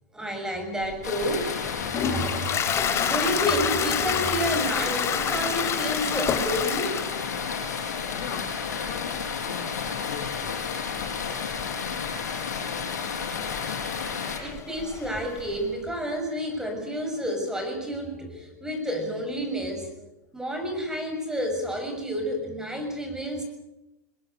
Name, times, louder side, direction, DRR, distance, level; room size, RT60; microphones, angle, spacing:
voice 1, 0.1-7.0 13.0-13.7 14.4-20.1 20.3-23.4, equal, 5° right, 5 dB, 6.7 m, -30 dB
Toilet flush, 0.9-15.6, left 8 dB, 30° left, 2.6 m, -31 dB
sound 1, 1.0-14.4, left 6 dB, 90° left, 5.4 m, -32 dB
voice 2, 8.1-10.6, left 8 dB, 60° left, 4 dB, 3.6 m, -41 dB
22.0 x 21.0 x 8.1 m, 0.94 s
hypercardioid pair, 110°, 9 cm